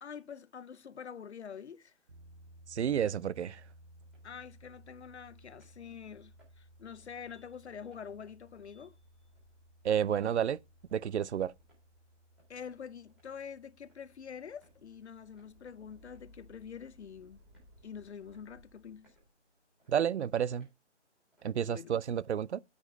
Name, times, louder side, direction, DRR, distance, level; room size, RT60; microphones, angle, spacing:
voice 1, 0.0-1.9 4.2-9.0 12.5-17.4 17.8-19.1 21.5-21.9, left 7 dB, 65° left, 0.7 m, -46 dB
sound 1, 2.1-18.4, right 1 dB, 45° right, 1.0 m, -60 dB
voice 2, 2.7-3.6 9.8-10.6 10.9-11.5 19.9-20.7 21.4-22.6, right 9 dB, 65° right, 0.5 m, -30 dB
sound 2, 4.0-4.3 4.9-5.0 5.6-5.8 6.4-6.6 7.0-7.3 7.9-8.1 8.6-8.8 9.4-9.5 10.1-10.3 10.9-11.1 11.6-11.8 12.4-12.6 13.1-13.3 13.8-14.0 14.6-14.8 15.4-15.5 16.1-16.3 16.8-17.1 17.5-17.7 18.3-18.5 19.0-19.3 19.8-19.9 20.6-20.8 21.3-21.5, right 1 dB, ahead, 2.8 m, -70 dB
sound 3, 5.8-19.3, equal, 20° right, 4.5 m, -65 dB
8.4 x 5.2 x 5.2 m
hypercardioid pair, 180°, 36 cm